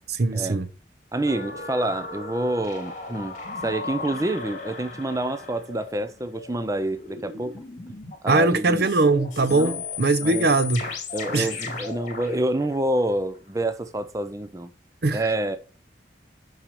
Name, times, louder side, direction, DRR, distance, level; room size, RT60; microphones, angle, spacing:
voice 1, 0.1-0.7 8.3-10.9 11.3-11.5 15.0-15.2, right 3 dB, 60° right, 0.7 m, -21 dB
voice 2, 1.1-7.5 8.2-8.9 9.5-9.8 10.2-10.5 11.1-14.7 15.1-15.6, right 1 dB, 15° right, 0.4 m, -27 dB
sound 1, 1.2-8.2 8.8-13.4 13.7-13.8, left 4 dB, 40° left, 2.1 m, -36 dB
5.9 x 5.5 x 6.3 m
head